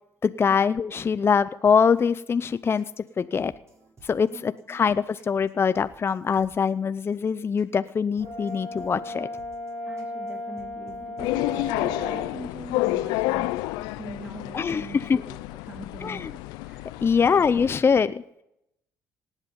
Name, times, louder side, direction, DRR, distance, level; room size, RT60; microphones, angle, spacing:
voice 1, 0.2-2.8 3.2-3.5 4.0-9.3 14.5-15.2 16.0-16.3 17.0-18.2, left 6 dB, 35° left, 12 dB, 0.6 m, -23 dB
sound 1, 2.4-11.9, right 2 dB, 45° right, 6.5 m, -56 dB
Brass instrument, 8.2-12.3, left 1 dB, 85° right, 4.9 m, -35 dB
voice 2, 9.8-17.2, right 1 dB, 20° right, 6 dB, 2.2 m, -42 dB
sound 2, 11.2-17.8, left 18 dB, 85° left, 0.5 m, -30 dB
18.0 x 8.2 x 5.4 m, 0.78 s
supercardioid pair, 65°, 7 cm